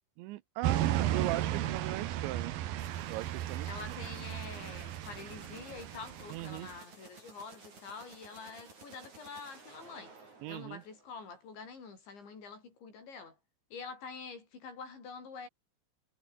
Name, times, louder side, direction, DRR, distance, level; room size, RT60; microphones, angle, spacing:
voice 1, 0.2-2.6 3.1-3.7 6.3-6.7 10.4-10.8, right 17 dB, 85° right, 3.1 m, -38 dB
sound 1, 0.6-6.8, right 12 dB, 65° right, 2.8 m, -34 dB
sound 2, 2.8-11.4, right 4 dB, 40° right, 7.9 m, -55 dB
voice 2, 3.7-13.4 13.7-15.5, left 5 dB, 75° left, 9.5 m, -46 dB
omnidirectional pair, 5.2 m